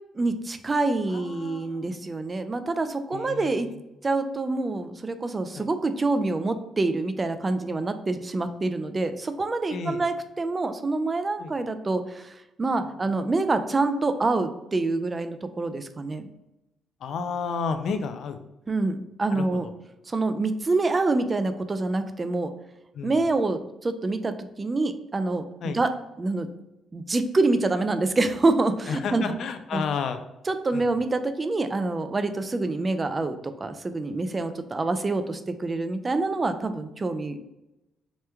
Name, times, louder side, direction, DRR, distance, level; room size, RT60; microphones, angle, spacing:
voice 1, 0.1-3.7 4.0-16.3 18.7-19.7 20.1-22.5 23.0-25.9 26.2-26.5 26.9-29.3 29.7-29.8 30.5-37.4, right 3 dB, 30° right, 9 dB, 0.3 m, -26 dB
voice 2, 1.1-2.0 3.1-3.8 5.5-5.7 9.7-10.0 11.4-11.5 17.0-18.4 19.3-19.7 22.9-23.2 25.6-25.8 28.9-30.2 30.7-30.8, left 5 dB, 70° left, 8 dB, 0.3 m, -32 dB
3.0 x 2.2 x 3.3 m, 0.93 s
cardioid pair, 90°, 0 cm